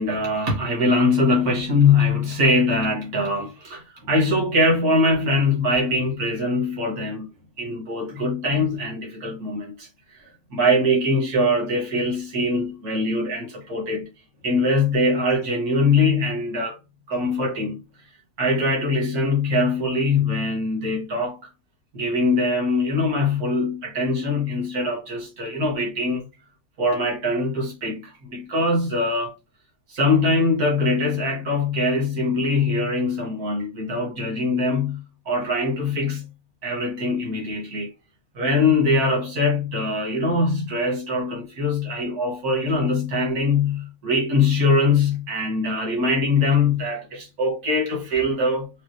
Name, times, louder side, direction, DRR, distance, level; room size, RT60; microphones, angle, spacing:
voice 1, 0.0-7.3 7.6-9.9 10.1-10.2 10.5-14.1 14.4-16.8 17.1-17.8 18.4-21.4 21.9-26.3 26.8-29.3 29.9-36.3 36.6-37.9 38.3-48.7, left 2 dB, 85° right, 2.4 m, -22 dB
5.6 x 2.7 x 3.1 m
omnidirectional pair, 1.6 m